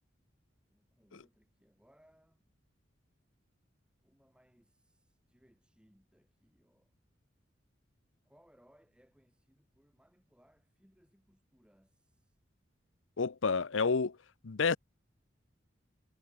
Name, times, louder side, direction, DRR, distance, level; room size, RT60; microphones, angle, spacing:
voice 1, 0.7-2.5 4.0-7.0 8.2-12.4, equal, 5° right, 7.0 m, -68 dB
voice 2, 13.2-14.2 14.4-14.8, left 5 dB, 85° left, 0.7 m, -29 dB
head